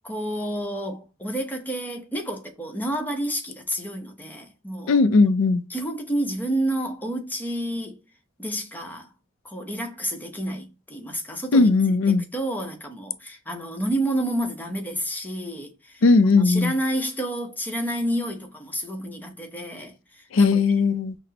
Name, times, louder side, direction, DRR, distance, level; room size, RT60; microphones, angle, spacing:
voice 1, 0.0-5.0 5.7-8.0 8.4-9.1 9.4-12.0 12.3-20.6, right 1 dB, 10° left, 0.7 m, -30 dB
voice 2, 4.9-5.6 11.5-12.3 16.0-16.7 20.3-21.1, left 3 dB, 65° left, 0.4 m, -18 dB
5.9 x 2.0 x 2.7 m
head